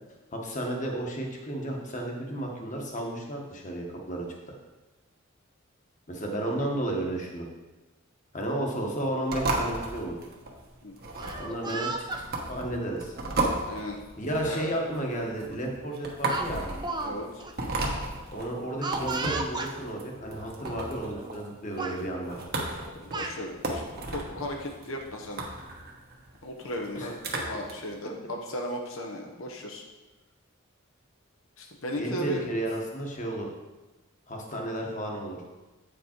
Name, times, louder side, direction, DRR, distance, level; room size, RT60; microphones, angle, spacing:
voice 1, 0.3-4.5 6.1-7.5 8.3-10.1 11.4-12.1 12.5-13.1 14.2-16.6 18.3-22.4 26.9-27.1 32.0-33.5 34.3-35.4, right 1 dB, 40° left, 0 dB, 1.3 m, -32 dB
voice 2, 6.3-6.7 10.8-10.9 11.2-11.3 11.6-11.8 13.7-14.0 14.4-14.7 17.0-17.4 23.0-23.8 24.1-25.4 26.4-27.2 27.4-29.8 31.6-32.4, left 1 dB, 80° left, 1 dB, 1.0 m, -36 dB
sound 1, 9.3-27.7, right 2 dB, 50° right, 1.2 m, -34 dB
Speech, 11.0-12.2 13.2-13.4 14.6-14.7 15.1-15.3 16.3-17.1 17.4-17.5 18.8-19.7 20.6-20.7 21.1-21.5 21.8-22.0 22.8-23.4, right 3 dB, 20° right, 0.5 m, -34 dB
8.2 x 5.1 x 4.5 m, 1.2 s
head